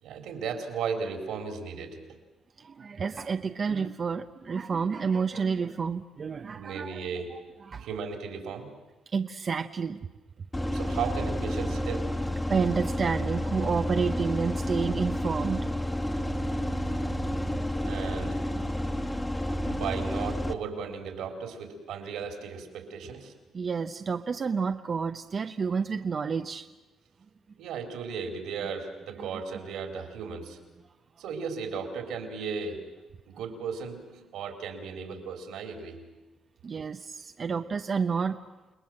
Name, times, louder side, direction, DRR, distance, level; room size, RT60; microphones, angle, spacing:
voice 1, 0.0-2.0 6.5-7.4 7.7-8.8 10.7-12.2 17.8-18.5 19.7-23.3 27.6-30.6 31.2-32.9 33.3-36.1, right 6 dB, 85° right, 4 dB, 4.0 m, -36 dB
voice 2, 2.6-7.0 7.3-7.4 7.7-7.9 9.1-10.0 12.5-15.6 23.5-26.7 36.6-38.4, right 5 dB, 45° right, 7 dB, 0.8 m, -30 dB
sound 1, 10.5-20.5, equal, 15° left, 1.8 m, -30 dB
29.5 x 19.5 x 7.6 m, 1.1 s
cardioid pair, 90°, 0 cm